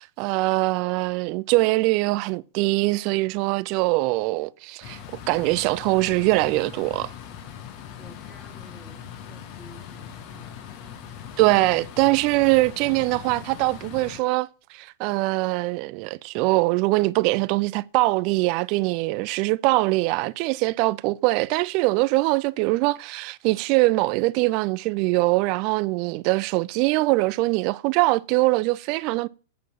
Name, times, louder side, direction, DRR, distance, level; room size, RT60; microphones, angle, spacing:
voice 1, 0.0-5.0 5.3-7.1 11.4-29.3, right 21 dB, 45° right, 0.4 m, -22 dB
sound 1, 4.8-14.2, left 8 dB, 45° left, 1.3 m, -40 dB
voice 2, 8.0-10.6 11.7-11.9, left 2 dB, 15° left, 1.8 m, -51 dB
8.3 x 4.6 x 5.8 m
hypercardioid pair, 100°, 0 cm